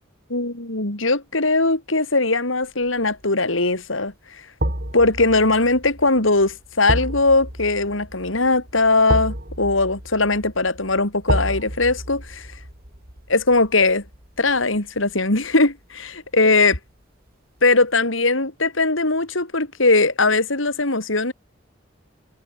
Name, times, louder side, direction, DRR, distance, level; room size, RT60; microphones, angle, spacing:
voice 1, 0.3-4.4 4.9-12.5 13.3-14.0 14.4-16.8 17.6-21.3, left 3 dB, 85° left, 4.0 m, -20 dB
sound 1, 2.8-3.2 4.6-15.6 15.9-16.1, right 1 dB, 50° right, 7.7 m, -30 dB
head